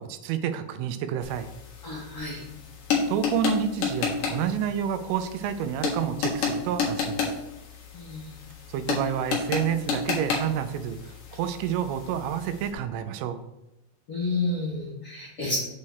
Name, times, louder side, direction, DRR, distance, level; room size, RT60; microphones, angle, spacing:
voice 1, 0.0-1.5 3.1-7.3 8.7-11.0 11.3-13.4, right 8 dB, 90° right, 10 dB, 3.3 m, -29 dB
sound 1, 1.2-12.7, left 5 dB, 60° left, 2.4 m, -31 dB
voice 2, 1.8-2.4 7.9-8.3 14.1-15.6, left 2 dB, 80° left, -7 dB, 1.2 m, -30 dB
7.6 x 4.2 x 6.5 m, 0.92 s
omnidirectional pair, 5.7 m